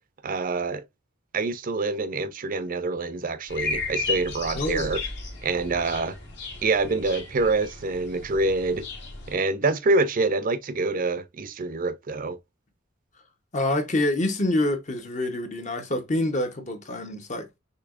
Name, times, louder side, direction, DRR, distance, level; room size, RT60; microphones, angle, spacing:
voice 1, 0.2-0.8 1.3-5.0 5.4-6.2 6.6-8.8 9.3-12.4, right 3 dB, 45° right, 0.6 m, -26 dB
sound 1, 3.5-9.3, left 3 dB, 60° left, 1.9 m, -34 dB
voice 2, 4.5-5.0 13.5-17.5, left 1 dB, 40° left, 1.0 m, -26 dB
6.7 x 2.9 x 2.5 m
head